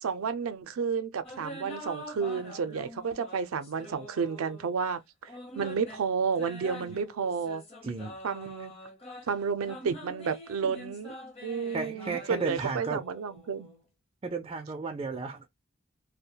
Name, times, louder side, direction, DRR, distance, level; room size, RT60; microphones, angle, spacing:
voice 1, 0.0-5.0 5.6-7.6 8.2-8.7 9.3-11.1 11.4-13.7, right 6 dB, 90° right, 0.4 m, -31 dB
sound 1, 1.2-4.8 5.3-13.8, equal, 30° left, 0.8 m, -45 dB
voice 2, 7.8-8.2 11.7-13.0 14.2-15.5, right 4 dB, 25° right, 0.3 m, -34 dB
2.3 x 2.1 x 2.7 m
head